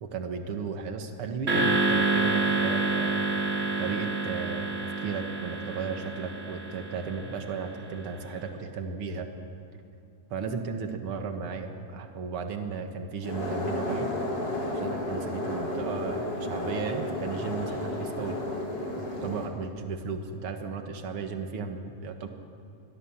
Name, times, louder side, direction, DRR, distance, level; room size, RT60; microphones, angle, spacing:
voice 1, 0.0-3.2 3.8-9.3 10.3-14.1 14.7-18.4 19.0-22.3, right 5 dB, 55° right, 5 dB, 1.7 m, -35 dB
sound 1, 1.5-7.8, right 2 dB, 20° right, 3.2 m, -28 dB
sound 2, 13.2-19.5, left 1 dB, 25° left, 4.5 m, -32 dB
26.0 x 21.0 x 7.4 m, 2.6 s
omnidirectional pair, 4.4 m